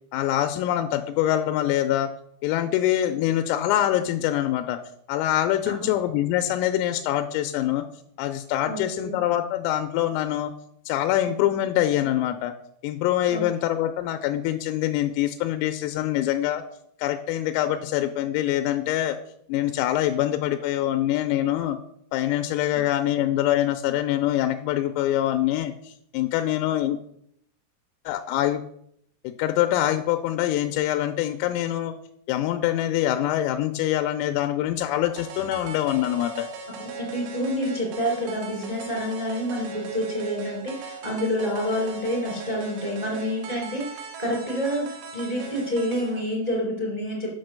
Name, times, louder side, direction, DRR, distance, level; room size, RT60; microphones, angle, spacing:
voice 1, 0.1-2.1 2.4-4.8 5.1-7.8 8.2-10.5 10.9-12.5 12.8-16.6 17.0-19.2 19.5-21.8 22.1-27.0 28.1-28.6 29.4-31.9 32.3-36.5, left 12 dB, 85° left, 7 dB, 3.2 m, -24 dB
voice 2, 8.6-9.1 13.3-13.4 37.0-47.3, equal, 15° right, -3 dB, 1.1 m, -28 dB
sound 1, 35.2-46.2, right 5 dB, 75° right, 3.5 m, -39 dB
7.9 x 6.1 x 6.6 m, 0.69 s
omnidirectional pair, 5.9 m